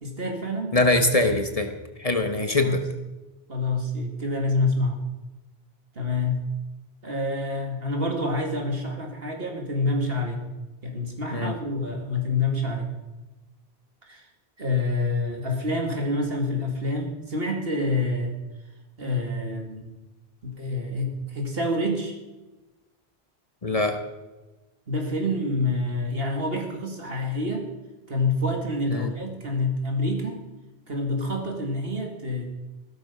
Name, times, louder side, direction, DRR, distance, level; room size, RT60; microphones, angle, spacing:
voice 1, 0.0-0.8 2.6-2.8 3.5-5.0 6.0-6.4 7.0-10.4 10.8-12.9 14.1-14.2 14.6-18.4 19.0-19.9 20.4-22.1 24.9-27.7 28.1-30.4 30.9-32.5, left 2 dB, 65° right, 3 dB, 2.5 m, -27 dB
voice 2, 0.7-1.7 2.0-2.8 11.3-11.5 23.6-24.0 28.9-29.1, left 2 dB, 35° left, 6 dB, 1.3 m, -23 dB
16.0 x 12.5 x 5.5 m, 1.1 s
omnidirectional pair, 1.1 m